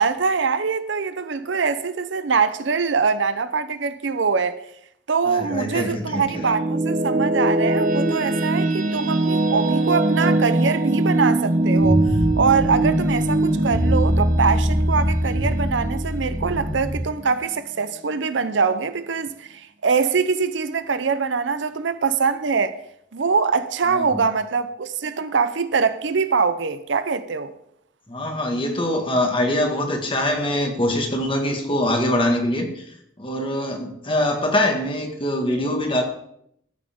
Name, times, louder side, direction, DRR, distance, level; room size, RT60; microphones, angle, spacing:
voice 1, 0.0-4.6 5.1-12.0 12.4-22.8 23.1-27.5, right 5 dB, 70° right, 0.6 m, -23 dB
voice 2, 5.2-6.2 23.9-24.3 28.1-36.0, left 1 dB, 25° left, 1.8 m, -23 dB
sound 1, 5.9-17.2, right 2 dB, 40° right, 1.0 m, -22 dB
sound 2, 11.8-17.0, equal, 40° left, 2.2 m, -23 dB
13.5 x 8.5 x 3.6 m
head